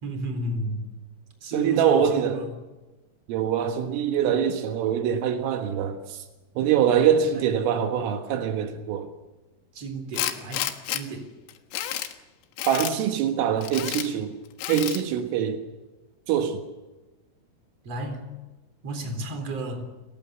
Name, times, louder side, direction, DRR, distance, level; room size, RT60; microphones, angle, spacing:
voice 1, 0.0-0.8 1.4-2.5 6.9-7.4 9.7-11.3 17.8-18.3 18.8-19.9, right 2 dB, 30° right, 4.5 m, -33 dB
voice 2, 1.5-2.4 3.3-6.2 6.6-9.1 12.7-14.4 14.7-15.6 16.3-16.6, right 8 dB, 80° right, 4.0 m, -24 dB
Tools, 10.1-11.0 11.5-12.1 12.6-13.0 13.6-14.1 14.6-15.0, left 12 dB, 80° left, 4.0 m, -30 dB
30.0 x 18.5 x 7.0 m
omnidirectional pair, 5.8 m